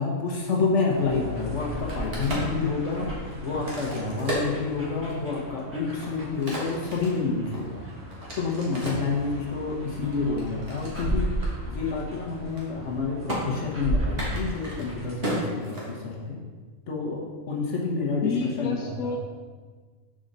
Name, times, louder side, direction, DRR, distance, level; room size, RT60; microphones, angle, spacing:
voice 1, 0.0-3.1 3.4-7.8 8.4-11.3 11.7-16.4 16.9-19.2, left 4 dB, 65° left, -2 dB, 1.2 m, -28 dB
sound 1, 0.9-15.2, right 1 dB, 10° right, 1.6 m, -35 dB
Crack, 1.7-5.3 5.8-9.1 9.7-11.1 11.4-11.5 11.8-12.1 12.4-12.9 13.3-13.4 14.1-16.3, right 1 dB, 45° right, 1.8 m, -34 dB
voice 2, 18.2-19.2, left 5 dB, 85° left, 0 dB, 1.0 m, -29 dB
6.5 x 5.2 x 4.0 m, 1.5 s
omnidirectional pair, 1.4 m